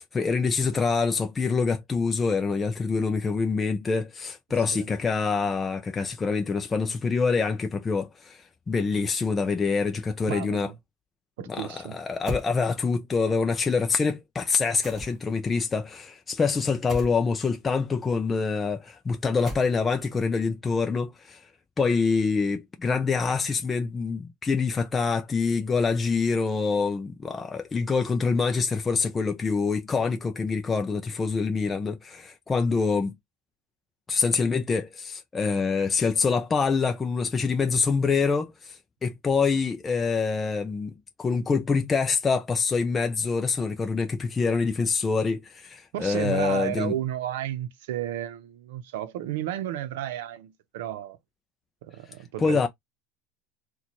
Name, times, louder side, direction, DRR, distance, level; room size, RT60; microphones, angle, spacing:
voice 1, 0.0-10.7 11.5-21.4 21.8-33.1 34.1-46.9 52.4-52.7, left 4 dB, 10° left, 0.3 m, -26 dB
voice 2, 10.3-10.8 11.4-12.0 45.9-51.2 51.8-52.7, right 12 dB, 75° right, 0.6 m, -32 dB
sound 1, 12.3-12.5 14.8-15.4 16.9-17.2 19.5-20.0, equal, 15° right, 1.1 m, -36 dB
4.1 x 2.2 x 3.0 m
supercardioid pair, 175°, 0 cm